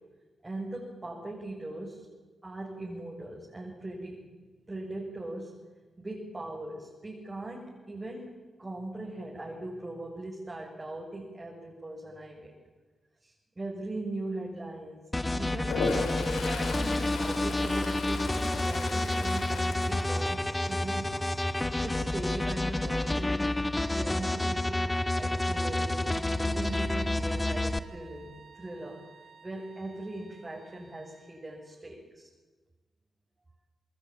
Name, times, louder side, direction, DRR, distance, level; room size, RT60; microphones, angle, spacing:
voice 1, 0.4-2.1 2.4-4.2 4.7-5.5 6.0-12.5 13.2-15.1 15.3-21.2 21.8-23.6 23.9-24.8 25.1-29.0 29.4-32.3, right 2 dB, 30° right, -3 dB, 7.4 m, -40 dB
sound 1, 15.1-27.8, left 1 dB, 20° left, 1.6 m, -29 dB
Toilet flush, 15.6-20.8 21.2-21.5 26.0-26.1 26.4-27.1, left 4 dB, 85° left, 4.4 m, -36 dB
sound 2, 21.7-31.7, right 4 dB, 60° right, 4.8 m, -56 dB
27.5 x 21.0 x 8.9 m, 1.3 s
supercardioid pair, 50°, 0 cm